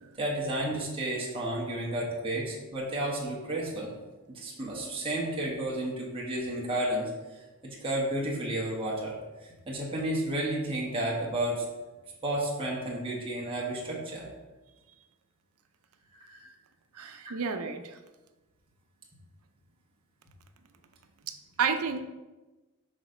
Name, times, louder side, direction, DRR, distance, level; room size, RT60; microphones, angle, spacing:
voice 1, 0.2-3.9 4.3-7.1 7.8-9.1 9.4-11.6 12.2-14.3 16.1-16.5 16.9-17.1, right 1 dB, 25° right, -4 dB, 1.4 m, -32 dB
voice 2, 17.0-18.0 21.3-22.0, right 5 dB, 85° right, 8 dB, 0.6 m, -31 dB
6.3 x 4.0 x 5.0 m, 1.1 s
head